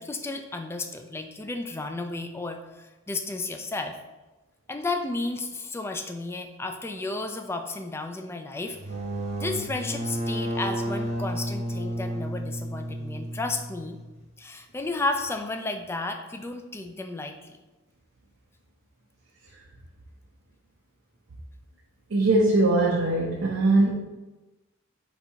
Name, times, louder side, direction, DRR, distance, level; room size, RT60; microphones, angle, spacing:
voice 1, 0.0-4.0 4.7-8.8 9.4-14.0 14.4-17.6, left 2 dB, 10° left, 5 dB, 0.3 m, -33 dB
sound 1, 8.7-14.2, right 1 dB, 35° right, 0.9 m, -32 dB
voice 2, 22.1-23.9, right 2 dB, 70° right, -3 dB, 0.6 m, -21 dB
4.1 x 2.7 x 4.5 m, 1.1 s
head